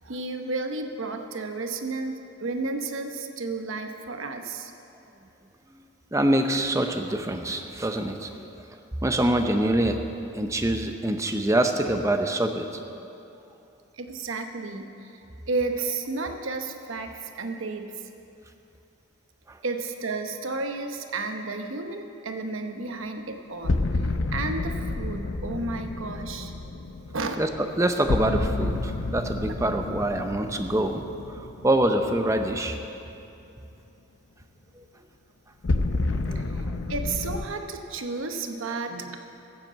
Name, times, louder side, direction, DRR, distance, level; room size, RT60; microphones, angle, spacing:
voice 1, 0.0-4.7 14.0-15.2 15.5-18.0 19.6-23.8 24.3-26.5 27.1-27.4 36.3-36.4 36.9-39.2, right 3 dB, 75° right, 5 dB, 1.0 m, -32 dB
voice 2, 6.1-8.3 9.0-10.1 10.4-12.7 27.4-31.0 31.6-32.8 36.3-36.4, right 1 dB, 15° right, 6 dB, 0.7 m, -25 dB
sound 1, 23.6-32.6 35.6-37.5, left 2 dB, 70° left, 0.7 m, -30 dB
14.5 x 7.6 x 8.0 m, 2.8 s
head